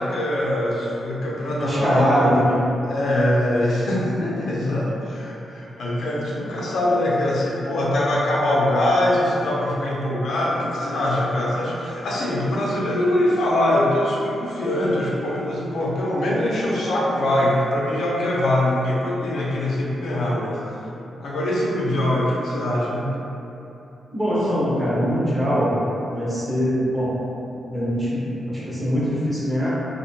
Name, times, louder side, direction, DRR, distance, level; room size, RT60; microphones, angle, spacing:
voice 1, 0.0-2.3 2.8-20.6 21.2-23.2, left 1 dB, 75° left, -5 dB, 0.4 m, -23 dB
voice 2, 1.3-2.6 24.1-25.8 26.1-27.2 27.7-29.7, equal, 15° right, -9 dB, 0.6 m, -22 dB
2.5 x 2.1 x 2.7 m, 2.9 s
wide cardioid pair, 180°, 0 cm